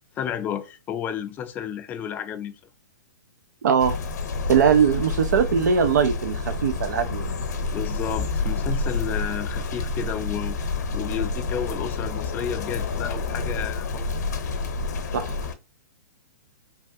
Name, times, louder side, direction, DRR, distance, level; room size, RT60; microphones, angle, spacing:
voice 1, 0.2-2.5 7.7-14.0, left 9 dB, 20° left, 0.4 m, -32 dB
voice 2, 3.6-4.0 4.5-7.3 15.1-15.3, right 7 dB, 80° right, 0.4 m, -21 dB
sound 1, 3.8-15.5, left 3 dB, 75° left, 0.7 m, -29 dB
3.4 x 2.3 x 2.6 m
hypercardioid pair, 140°, 9 cm